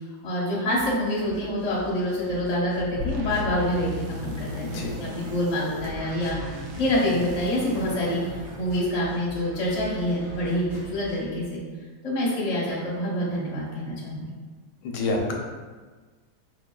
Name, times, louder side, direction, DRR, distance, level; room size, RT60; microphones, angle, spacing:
voice 1, 0.2-4.7 5.0-8.2 8.6-11.6 12.0-14.2, left 1 dB, 30° left, -6 dB, 0.8 m, -26 dB
sound 1, 0.7-11.2, right 2 dB, 45° right, 0.4 m, -44 dB
sound 2, 3.0-9.1, left 2 dB, 70° right, 0.9 m, -36 dB
voice 2, 4.6-5.0 14.8-15.3, left 2 dB, 85° left, 1 dB, 1.2 m, -28 dB
4.8 x 2.4 x 2.2 m, 1.4 s
omnidirectional pair, 1.7 m